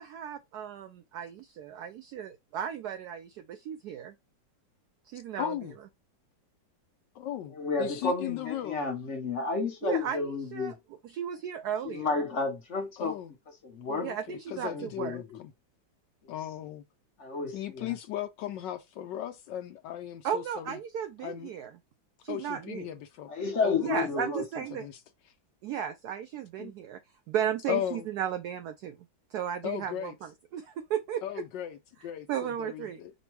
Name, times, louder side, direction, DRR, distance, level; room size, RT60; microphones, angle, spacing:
voice 1, 0.0-4.1 5.1-5.5 9.8-10.2 10.5-10.7 11.1-12.2 14.0-14.7 15.0-15.2 20.2-21.7 22.2-22.9 23.8-24.9 25.6-27.0 27.3-29.0 29.3-31.2 32.3-33.0, right 9 dB, 75° right, 1.0 m, -35 dB
voice 2, 5.3-5.8 7.1-8.9 13.0-13.3 13.9-15.5 16.3-16.8 17.5-20.8 21.2-21.5 22.3-23.3 23.6-24.3 24.7-25.3 26.6-26.7 27.7-28.1 29.6-30.1 31.2-33.1, left 11 dB, 75° left, 1.2 m, -37 dB
voice 3, 7.5-10.8 11.8-13.2 13.6-14.1 14.6-15.4 16.2-16.3 17.2-18.0 23.3-24.4, left 4 dB, 45° left, 1.1 m, -31 dB
5.2 x 2.2 x 4.6 m
omnidirectional pair, 2.1 m